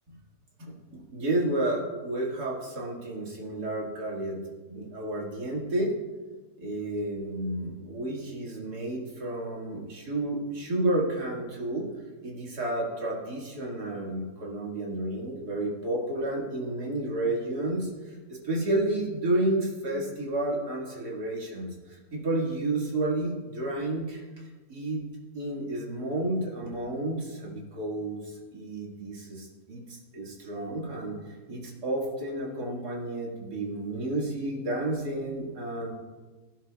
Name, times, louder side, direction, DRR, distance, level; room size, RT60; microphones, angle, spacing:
voice 1, 0.6-4.4 4.7-5.9 6.6-11.9 12.2-25.0 25.3-35.9, right 1 dB, 75° right, -3 dB, 2.6 m, -31 dB
17.0 x 10.5 x 2.4 m, 1.3 s
omnidirectional pair, 1.7 m